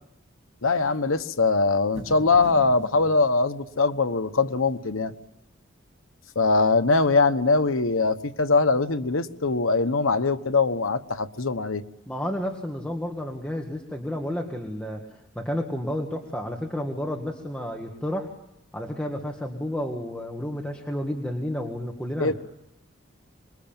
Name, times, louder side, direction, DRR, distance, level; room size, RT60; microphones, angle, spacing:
voice 1, 0.6-5.1 6.3-11.8 22.2-22.3, left 3 dB, 85° left, 1.2 m, -22 dB
sound 1, 1.9-3.1, equal, 35° right, 7.7 m, -40 dB
voice 2, 12.1-15.0 15.3-18.3 18.7-22.3, equal, 5° left, 1.8 m, -31 dB
25.5 x 22.0 x 8.9 m
head